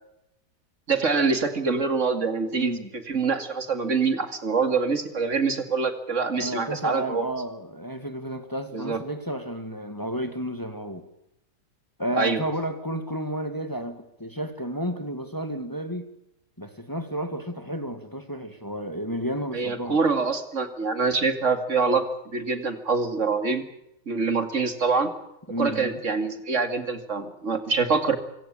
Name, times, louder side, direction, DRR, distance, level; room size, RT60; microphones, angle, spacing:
voice 1, 0.9-7.3 8.7-9.0 12.1-12.4 19.5-22.0 22.3-23.6 24.1-25.1 25.6-28.2, right 4 dB, 45° right, 9 dB, 2.6 m, -25 dB
voice 2, 2.5-2.9 6.4-11.1 12.0-16.1 16.6-20.0 25.5-26.0, right 1 dB, 10° left, 8 dB, 2.0 m, -32 dB
25.5 x 16.5 x 8.7 m, 0.84 s
omnidirectional pair, 1.8 m